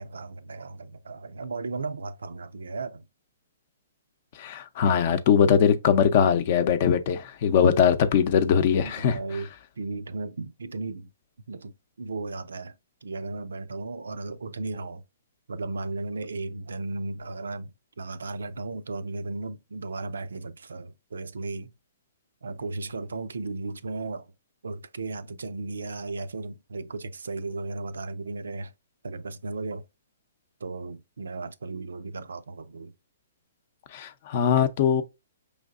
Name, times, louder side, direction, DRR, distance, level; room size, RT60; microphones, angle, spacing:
voice 1, 0.0-3.0 7.6-7.8 8.8-9.5 9.8-11.1 11.5-12.7 13.0-15.0 15.5-21.7 22.4-24.3 24.6-28.7 29.0-29.8 30.6-32.9, right 3 dB, 85° right, 0.4 m, -35 dB
voice 2, 4.3-9.2 33.9-35.0, left 7 dB, 45° left, 0.6 m, -21 dB
5.2 x 3.2 x 2.5 m
hypercardioid pair, 140°, 0 cm